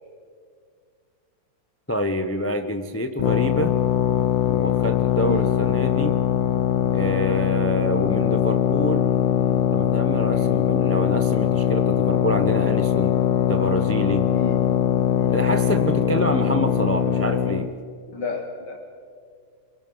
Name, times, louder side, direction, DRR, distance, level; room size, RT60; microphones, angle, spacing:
voice 1, 1.9-3.8 4.5-6.2 6.9-9.0 9.7-13.1 13.5-14.2 15.3-17.7, equal, 20° left, 8 dB, 0.3 m, -27 dB
sound 1, 3.2-17.7, left 9 dB, 85° left, 1.5 m, -21 dB
voice 2, 18.1-18.8, left 3 dB, 65° left, 3 dB, 2.0 m, -33 dB
25.0 x 22.5 x 5.5 m, 2.2 s
omnidirectional pair, 2.0 m